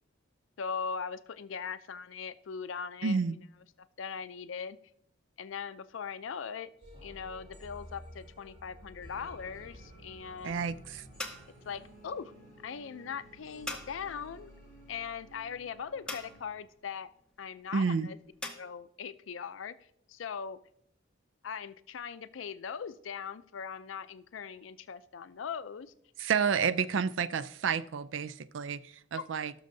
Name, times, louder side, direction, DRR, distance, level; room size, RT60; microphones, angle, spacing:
voice 1, 0.6-3.2 3.8-4.8 5.4-6.7 7.0-10.7 11.7-12.3 12.6-14.5 14.9-17.1 17.4-18.2 18.5-19.8 20.1-20.6 21.4-25.9 29.1-29.3, left 6 dB, 85° left, 0.5 m, -40 dB
voice 2, 3.0-3.4 10.4-11.0 17.7-18.1 26.2-29.5, right 6 dB, 75° right, 0.4 m, -30 dB
sound 1, 6.8-16.5, equal, 35° right, 3.7 m, -52 dB
sound 2, 8.9-18.6, left 2 dB, 5° left, 0.9 m, -47 dB
17.5 x 6.4 x 2.7 m
head